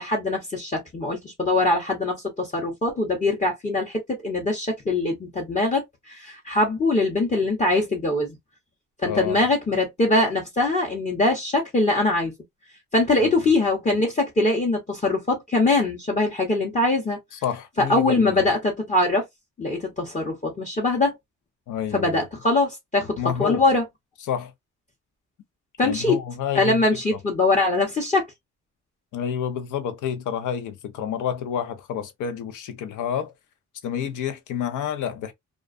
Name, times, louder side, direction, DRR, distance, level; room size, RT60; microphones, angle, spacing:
voice 1, 0.0-8.4 9.0-12.3 12.9-17.2 17.8-19.3 19.6-21.1 21.9-23.8 25.8-26.2 26.5-28.2, left 2 dB, 25° left, 0.8 m, -22 dB
voice 2, 9.0-9.5 13.2-13.3 17.4-18.4 21.7-22.1 23.2-23.6 24.3-24.5 25.8-26.8 29.1-33.3 33.8-35.3, left 8 dB, 80° left, 0.7 m, -29 dB
2.4 x 2.3 x 2.4 m
cardioid pair, 90°, 30 cm